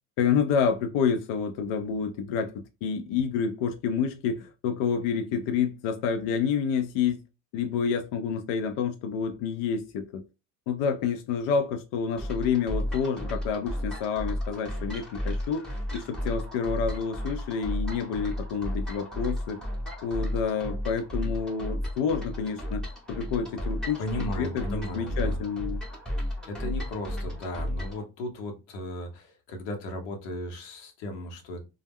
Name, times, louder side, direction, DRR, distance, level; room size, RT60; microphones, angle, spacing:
voice 1, 0.2-7.2 7.5-10.2 10.7-19.6 20.0-22.8 23.1-24.0 24.4-25.8, left 6 dB, 60° left, 0.5 m, -28 dB
sound 1, 12.2-28.0, equal, ahead, 0.8 m, -33 dB
voice 2, 24.0-25.4 26.1-31.6, left 1 dB, 85° left, 0.9 m, -36 dB
2.3 x 2.0 x 3.4 m
supercardioid pair, 95°, 49 cm